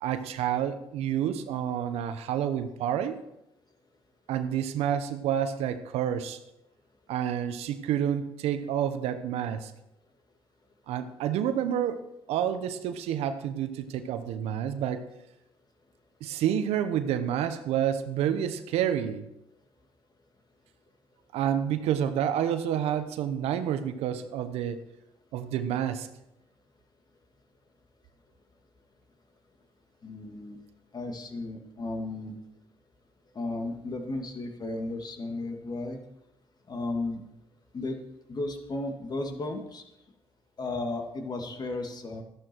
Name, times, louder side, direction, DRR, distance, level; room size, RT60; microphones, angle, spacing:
voice 1, 0.0-3.2 4.3-6.4 7.1-9.7 10.9-12.0 12.3-15.1 16.2-19.2 21.3-24.8 25.3-26.1, right 9 dB, 80° right, 10 dB, 1.0 m, -29 dB
voice 2, 30.0-30.6 30.9-32.3 33.3-36.0 36.7-37.2 37.7-38.0 38.3-39.8 40.6-42.2, left 2 dB, 40° left, 4 dB, 2.3 m, -34 dB
13.0 x 11.0 x 4.6 m, 0.88 s
supercardioid pair, 70°, 10 cm